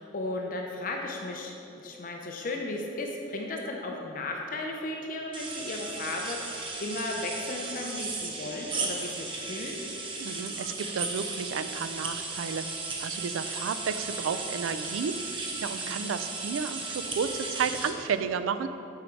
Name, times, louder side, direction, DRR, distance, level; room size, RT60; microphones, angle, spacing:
voice 1, 0.0-9.8 15.7-16.1, left 2 dB, 45° left, 1 dB, 0.5 m, -35 dB
sound 1, 5.3-17.9, right 3 dB, 25° right, 0.6 m, -36 dB
voice 2, 10.2-18.7, right 6 dB, 90° right, 11 dB, 0.4 m, -32 dB
7.9 x 4.8 x 4.5 m, 3.0 s
head